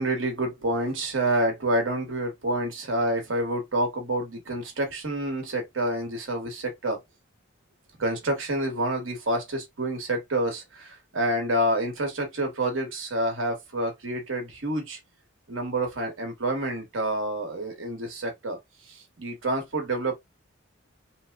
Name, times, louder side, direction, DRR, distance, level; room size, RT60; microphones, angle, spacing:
voice 1, 0.0-7.0 8.0-15.0 15.5-18.6 18.9-20.2, right 1 dB, 75° right, 1.0 m, -28 dB
3.0 x 2.0 x 3.3 m
head